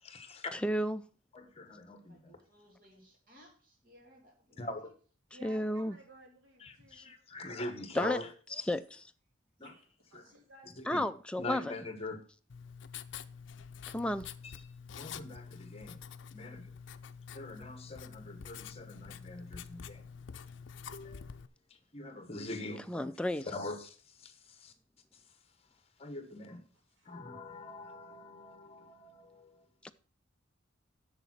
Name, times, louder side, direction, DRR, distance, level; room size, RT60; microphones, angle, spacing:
voice 1, 0.0-0.5 1.3-2.3 4.6-4.8 6.6-8.7 9.6-9.7 10.1-10.2 10.8-11.0 11.4-12.2 14.4-14.7 15.0-16.0 16.3-16.7 17.3-20.0 20.9-21.4 21.9-23.1 23.5-24.7 26.0-26.6 27.0-29.6, left 2 dB, 30° left, 1.2 m, -43 dB
voice 2, 0.5-1.0 5.4-6.0 8.0-8.2 8.7-8.8 10.9-11.6 13.9-14.3 22.9-23.5 29.8-29.9, left 1 dB, 5° left, 0.4 m, -32 dB
voice 3, 2.1-4.9, equal, 45° right, 2.7 m, -61 dB
voice 4, 5.3-7.5 9.6-11.0 26.9-27.2 27.8-28.1, right 2 dB, 75° right, 2.8 m, -58 dB
Writing, 12.5-21.5, left 7 dB, 65° left, 0.5 m, -47 dB
7.4 x 6.9 x 5.8 m
head